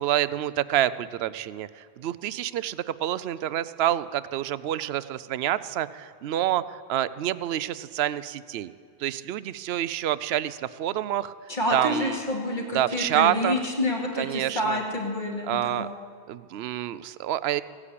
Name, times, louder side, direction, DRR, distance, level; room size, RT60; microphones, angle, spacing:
voice 1, 0.0-8.7 9.0-11.3 11.7-12.2 12.7-13.6 14.2-14.8 15.5-15.9 16.3-17.6, right 12 dB, 70° right, 16 dB, 0.8 m, -27 dB
voice 2, 11.5-15.9, left 1 dB, 45° left, -1 dB, 2.6 m, -28 dB
16.5 x 9.9 x 8.5 m, 2.3 s
omnidirectional pair, 1.1 m